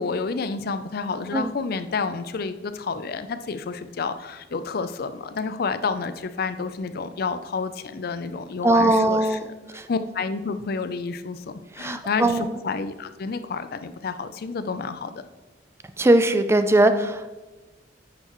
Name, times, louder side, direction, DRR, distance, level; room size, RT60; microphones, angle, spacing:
voice 1, 0.0-9.4 9.7-15.3, left 4 dB, 55° left, 10 dB, 0.5 m, -29 dB
voice 2, 8.6-9.9 11.7-12.6 16.0-17.3, right 1 dB, 15° right, 9 dB, 0.4 m, -20 dB
9.7 x 5.8 x 3.0 m, 1.2 s
head